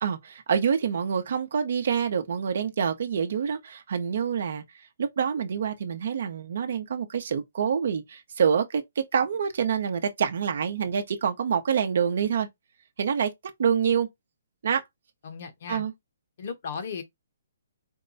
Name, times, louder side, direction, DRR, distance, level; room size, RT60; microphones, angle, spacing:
voice 1, 0.0-4.6 5.0-12.5 13.0-13.3 13.6-14.1 14.6-14.8 15.7-15.9, right 7 dB, 50° right, 0.8 m, -26 dB
voice 2, 15.2-15.8 16.4-17.0, left 6 dB, 40° left, 1.0 m, -35 dB
4.5 x 2.2 x 3.9 m
hypercardioid pair, 170°, 0 cm